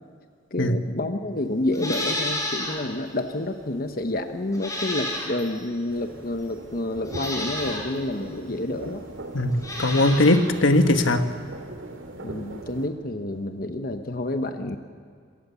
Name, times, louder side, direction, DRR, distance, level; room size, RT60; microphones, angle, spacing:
voice 1, 0.5-9.0 12.2-14.8, left 1 dB, 50° left, 6 dB, 1.1 m, -29 dB
Livestock farm animals working animals, 1.7-2.8 3.2-3.3 4.5-5.6 6.4-6.5 7.0-7.8 9.5-10.4 10.7-10.8, left 1 dB, 15° left, 5.9 m, -30 dB
sound 1, 5.9-12.9, right 2 dB, 80° right, 2.6 m, -40 dB
voice 2, 9.3-11.2, left 1 dB, 75° left, 7 dB, 1.5 m, -19 dB
27.0 x 17.5 x 7.0 m, 2.2 s
head